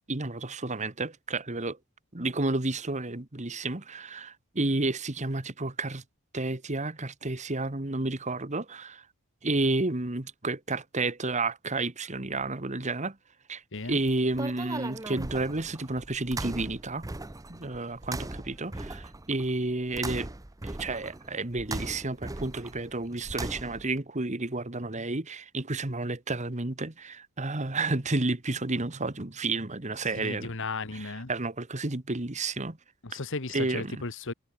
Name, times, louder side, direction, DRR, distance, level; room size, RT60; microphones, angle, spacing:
voice 1, 0.1-1.8 2.1-6.0 6.3-9.0 9.4-13.2 13.5-13.6 13.9-17.1 17.5-20.3 20.8-30.5 30.9-32.8 33.5-34.0, right 2 dB, 30° right, 1.5 m, -31 dB
voice 2, 13.7-14.0 30.1-31.3 33.0-34.3, left 3 dB, 55° left, 1.5 m, -35 dB
sound 1, 13.8-24.0, right 2 dB, 15° right, 0.7 m, -39 dB
head